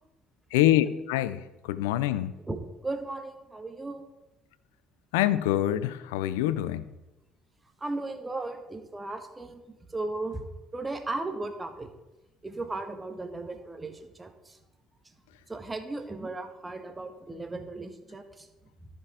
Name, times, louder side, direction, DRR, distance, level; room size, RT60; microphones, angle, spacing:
voice 1, 0.5-2.3 5.1-6.8, left 13 dB, 75° left, 15 dB, 0.4 m, -25 dB
voice 2, 2.5-4.0 7.8-11.9 12.4-14.6 15.5-18.5, right 2 dB, 20° right, 6 dB, 1.2 m, -36 dB
13.0 x 5.2 x 4.8 m, 1.0 s
figure-of-eight pair, 55°, 0 cm